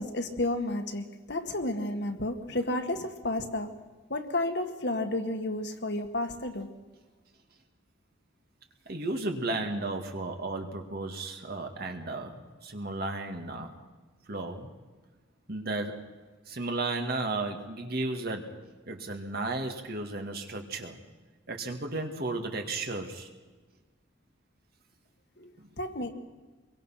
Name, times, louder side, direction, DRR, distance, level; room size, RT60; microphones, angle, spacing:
voice 1, 0.0-3.7 4.1-6.7 25.4-25.5 25.8-26.1, left 1 dB, 55° left, 7 dB, 1.9 m, -31 dB
voice 2, 8.9-13.8 14.3-14.7 15.5-16.1 16.5-21.0 21.5-23.3 25.6-25.7, right 2 dB, 50° right, 4 dB, 2.2 m, -34 dB
25.5 x 22.5 x 5.9 m, 1.3 s
head